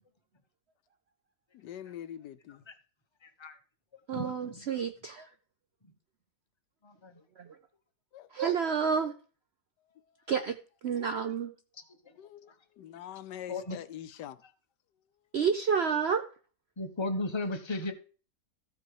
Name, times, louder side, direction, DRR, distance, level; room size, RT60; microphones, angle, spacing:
voice 1, 1.5-2.7 8.1-8.3 12.2-14.4, left 10 dB, 85° left, 1.3 m, -44 dB
voice 2, 3.2-3.6 4.1-4.6 6.8-7.2 13.5-13.8 16.8-17.9, left 2 dB, 25° left, 0.6 m, -35 dB
voice 3, 4.1-5.3 7.4-7.6 8.3-9.1 10.3-10.6 10.8-11.5 15.3-16.3, right 6 dB, 70° right, 0.6 m, -29 dB
14.0 x 4.8 x 4.8 m
omnidirectional pair, 1.8 m